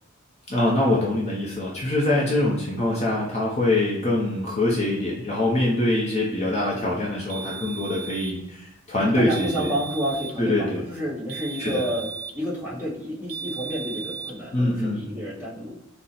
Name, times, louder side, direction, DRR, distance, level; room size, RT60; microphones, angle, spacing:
voice 1, 0.5-9.7 10.4-10.8 11.6-11.8 14.5-15.1, left 1 dB, 30° left, -3 dB, 0.6 m, -24 dB
voice 2, 6.7-7.2 9.0-12.1 12.3-15.8, equal, 10° right, -8 dB, 1.2 m, -30 dB
sound 1, 7.3-8.4 9.3-10.4 11.3-12.4 13.3-14.4, right 6 dB, 80° right, 0.5 m, -36 dB
3.9 x 2.0 x 4.1 m, 0.88 s
head